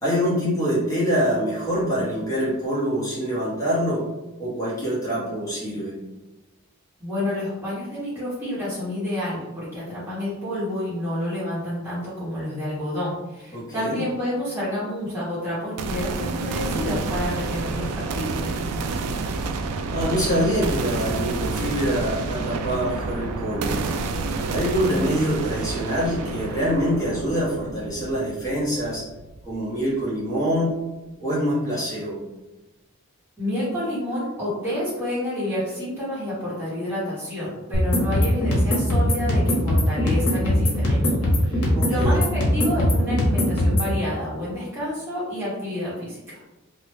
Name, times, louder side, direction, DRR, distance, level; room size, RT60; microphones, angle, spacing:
voice 1, 0.0-4.0 4.4-5.9 13.5-14.0 19.9-23.8 24.5-29.0 29.4-30.7 31.2-32.2 41.7-42.2, equal, 15° left, -8 dB, 1.1 m, -25 dB
voice 2, 7.0-18.6 33.4-46.4, left 1 dB, 10° right, -11 dB, 1.2 m, -29 dB
sound 1, 15.8-29.7, right 3 dB, 90° right, 0.4 m, -29 dB
sound 2, 37.7-43.9, left 1 dB, 80° left, 1.1 m, -21 dB
3.2 x 2.4 x 3.1 m, 1.1 s
head